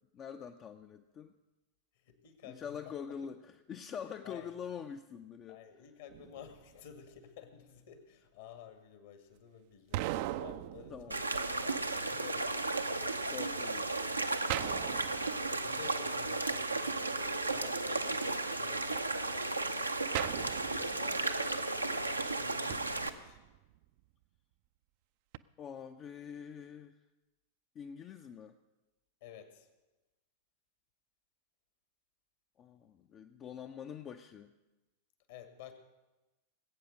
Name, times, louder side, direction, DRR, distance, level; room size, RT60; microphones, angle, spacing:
voice 1, 0.1-1.3 2.4-5.6 10.9-11.2 13.2-14.3 25.6-26.9 27.7-28.5 32.6-34.5, left 7 dB, 30° left, 7 dB, 0.6 m, -45 dB
voice 2, 2.1-3.2 4.2-4.5 5.5-10.1 10.4-13.0 15.6-20.0 20.6-23.4 29.2-29.7 35.3-35.7, left 8 dB, 55° left, 8 dB, 1.9 m, -52 dB
sound 1, 6.1-6.9 9.9-11.8 14.5-16.0 20.1-21.5 22.7-23.8 25.3-25.4, right 15 dB, 50° right, 0.5 m, -40 dB
sound 2, 11.1-23.1, right 2 dB, 85° right, 0.7 m, -34 dB
19.5 x 8.6 x 6.3 m, 1.1 s
figure-of-eight pair, 90°, 0 cm